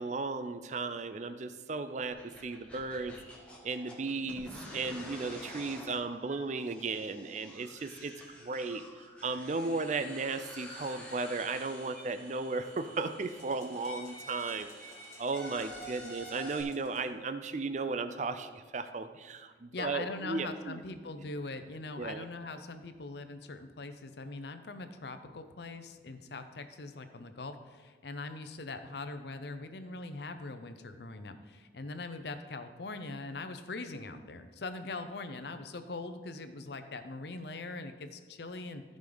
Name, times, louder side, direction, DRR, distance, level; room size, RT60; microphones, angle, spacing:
voice 1, 0.0-3.2 3.6-8.1 8.4-20.8 22.0-22.3, right 3 dB, 40° right, 10 dB, 0.4 m, -35 dB
sound 1, 2.1-16.6, equal, 5° left, 1.3 m, -49 dB
sound 2, 13.2-17.2, left 2 dB, 40° left, 1.9 m, -59 dB
voice 2, 19.7-38.8, left 3 dB, 60° left, 9 dB, 0.6 m, -42 dB
14.5 x 5.2 x 3.9 m, 1.5 s
head